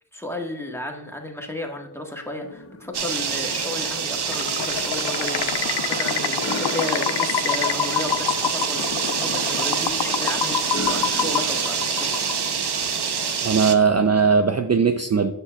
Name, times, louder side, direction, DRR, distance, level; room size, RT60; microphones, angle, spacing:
voice 1, 0.1-12.3 13.1-13.4, left 1 dB, 5° left, 1 dB, 1.4 m, -33 dB
sound 1, 2.4-12.0, left 1 dB, 35° left, 0.8 m, -40 dB
sound 2, 2.9-13.8, right 6 dB, 75° right, 0.7 m, -26 dB
sound 3, 4.2-12.7, left 8 dB, 90° left, 0.5 m, -27 dB
voice 2, 13.4-15.3, right 5 dB, 40° right, 8 dB, 0.5 m, -19 dB
7.1 x 7.1 x 2.3 m, 0.93 s
wide cardioid pair, 40°, 40 cm